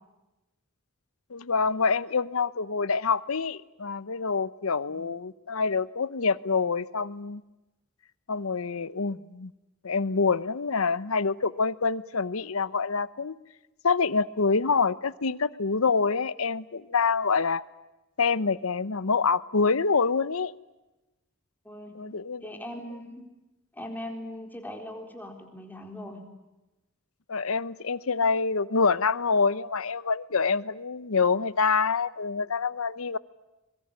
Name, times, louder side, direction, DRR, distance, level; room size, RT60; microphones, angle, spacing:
voice 1, 1.3-7.4 8.3-9.5 9.8-13.4 13.8-17.6 18.2-20.5 21.9-22.4 27.3-33.2, left 4 dB, 80° left, 18 dB, 0.9 m, -26 dB
voice 2, 21.6-21.9 22.4-23.2 23.7-26.2, left 1 dB, 10° left, 4 dB, 4.0 m, -40 dB
25.0 x 22.5 x 8.9 m, 1.0 s
head